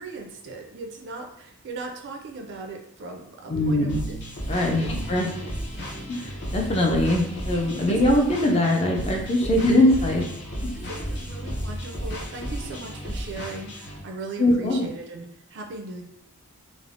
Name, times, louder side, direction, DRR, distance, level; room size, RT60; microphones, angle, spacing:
voice 1, 0.0-4.2 4.6-4.9 5.2-5.9 7.9-8.0 9.4-9.6 9.9-10.2 10.9-15.3 15.5-16.0, right 3 dB, 50° right, 3 dB, 0.4 m, -38 dB
voice 2, 3.5-4.0 4.5-5.3 6.1-10.3 10.6-10.7 14.4-14.9, left 1 dB, 25° left, 0 dB, 0.4 m, -22 dB
sound 1, 3.9-14.0, equal, 50° left, 0.8 m, -33 dB
3.2 x 2.0 x 2.5 m, 0.73 s
head